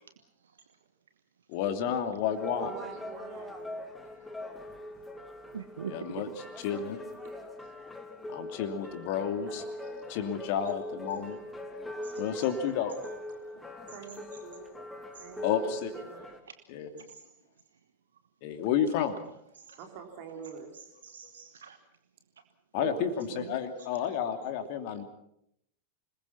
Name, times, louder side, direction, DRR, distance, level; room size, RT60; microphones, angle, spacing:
voice 1, 1.5-2.7 5.9-6.3 6.6-7.0 8.3-9.6 10.1-11.4 12.2-13.0 13.5-13.6 15.4-15.9 16.7-16.9 18.4-19.2 22.7-25.0, left 8 dB, 45° left, 8 dB, 2.7 m, -31 dB
sound 1, 2.3-16.4, left 1 dB, 5° left, 2.9 m, -42 dB
voice 2, 2.6-3.8 7.2-7.5 9.5-10.1 10.9-11.5 11.8-11.9 13.9-14.7 15.2-16.3 19.8-20.8 24.1-24.3, right 6 dB, 45° right, 4 dB, 3.4 m, -47 dB
voice 3, 5.5-6.4 12.0-12.2 17.1-17.2 19.5-19.8 20.7-21.8 22.8-23.9, right 7 dB, 65° right, 9 dB, 1.2 m, -42 dB
26.5 x 21.0 x 5.9 m, 0.74 s
figure-of-eight pair, 90°, 0 cm